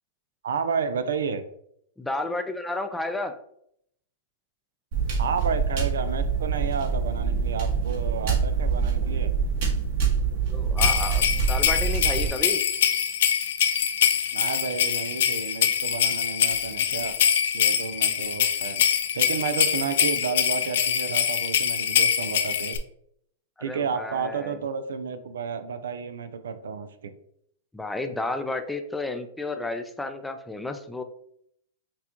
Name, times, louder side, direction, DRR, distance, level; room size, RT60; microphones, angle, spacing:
voice 1, 0.4-1.4 5.2-9.3 14.3-17.2 17.5-18.9 19.1-22.8 23.6-27.1, right 6 dB, 85° right, 11 dB, 0.4 m, -31 dB
voice 2, 2.0-3.4 10.5-12.6 23.6-24.6 27.7-31.0, left 2 dB, 5° left, 7 dB, 0.4 m, -32 dB
sound 1, 4.9-12.3, right 5 dB, 55° right, 1.6 m, -25 dB
sound 2, 10.8-22.8, left 8 dB, 70° left, 0.4 m, -24 dB
5.9 x 2.3 x 2.9 m, 0.72 s
hypercardioid pair, 135°, 0 cm